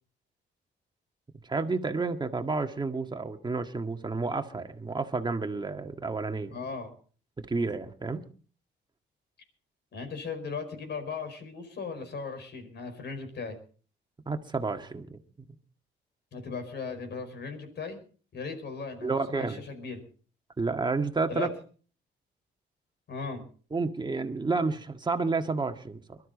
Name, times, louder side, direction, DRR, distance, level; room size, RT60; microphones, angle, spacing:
voice 1, 1.4-6.6 7.4-8.2 14.3-15.2 19.0-19.6 20.6-21.5 23.7-26.2, right 3 dB, 20° right, 6 dB, 1.7 m, -30 dB
voice 2, 6.5-6.9 9.9-13.6 16.3-18.0 18.3-20.0 21.3-21.5 23.1-23.4, left 4 dB, 60° left, 7 dB, 5.0 m, -37 dB
22.0 x 12.5 x 4.1 m, 0.42 s
cardioid pair, 90°, 20 cm